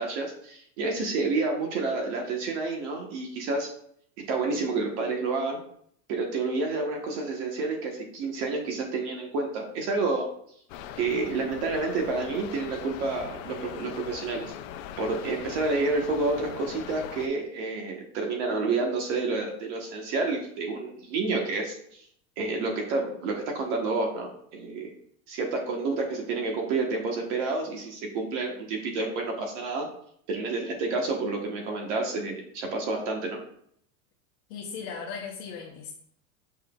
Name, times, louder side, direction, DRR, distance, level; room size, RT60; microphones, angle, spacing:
voice 1, 0.0-3.7 4.3-5.6 6.1-10.2 11.0-14.5 15.0-22.0 22.4-24.9 25.3-29.9 30.3-33.4, right 3 dB, 55° right, 2 dB, 1.4 m, -29 dB
sound 1, 10.7-17.3, left 9 dB, 65° left, 0.6 m, -40 dB
voice 2, 34.5-35.9, left 6 dB, 50° left, -3 dB, 1.1 m, -37 dB
6.9 x 5.7 x 2.4 m, 0.67 s
supercardioid pair, 170°, 42 cm